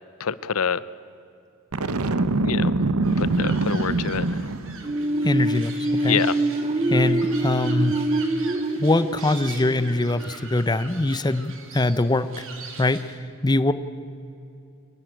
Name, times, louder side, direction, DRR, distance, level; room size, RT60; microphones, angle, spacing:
voice 1, 0.2-0.8 2.4-2.7 3.2-4.3 6.0-6.3, left 7 dB, 75° left, 17 dB, 0.7 m, -26 dB
Boom, 1.7-4.9, right 2 dB, 90° right, 1.0 m, -23 dB
sound 1, 3.0-13.2, right 4 dB, 65° right, 3.3 m, -42 dB
sound 2, 4.8-10.5, right 2 dB, 30° right, 0.8 m, -25 dB
voice 2, 5.2-6.2 6.9-8.0 8.8-12.4 12.8-13.2 13.4-13.7, left 2 dB, 20° left, 13 dB, 0.7 m, -23 dB
24.0 x 17.5 x 9.1 m, 2.7 s
head